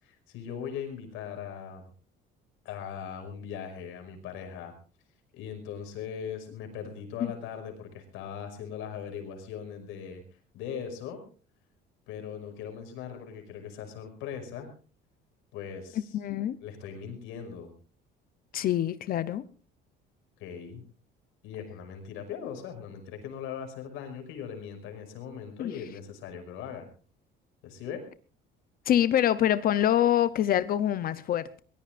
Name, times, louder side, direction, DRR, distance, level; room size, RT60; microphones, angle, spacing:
voice 1, 0.0-1.9 2.6-4.7 5.3-10.2 10.5-11.2 12.1-14.7 15.5-16.2 16.6-17.7 20.4-20.8 21.4-26.9 27.6-28.0, left 7 dB, 85° left, 5 dB, 5.6 m, -39 dB
voice 2, 16.1-16.6 18.5-19.4 25.6-25.7 28.9-31.6, left 11 dB, 45° left, 15 dB, 0.7 m, -25 dB
23.0 x 19.5 x 2.5 m, 0.39 s
cardioid pair, 150°, 20 cm